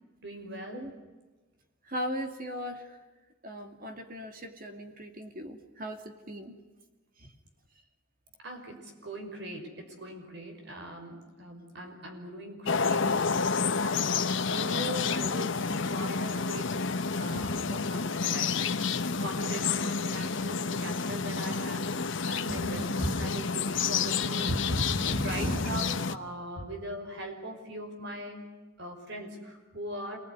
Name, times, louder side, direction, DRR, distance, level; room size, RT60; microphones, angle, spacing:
voice 1, 0.2-0.9 8.4-16.8 17.1-24.5 25.2-28.5 28.8-30.2, right 1 dB, 60° right, 4 dB, 5.8 m, -41 dB
voice 2, 1.8-3.0 3.4-6.6 7.2-7.3 17.3-17.5 22.5-23.1 24.5-25.8 26.6-26.7, equal, 45° right, 5 dB, 2.5 m, -36 dB
sound 1, 12.7-26.1, left 5 dB, 65° left, 1.0 m, -30 dB
27.5 x 20.5 x 9.7 m, 1.3 s
head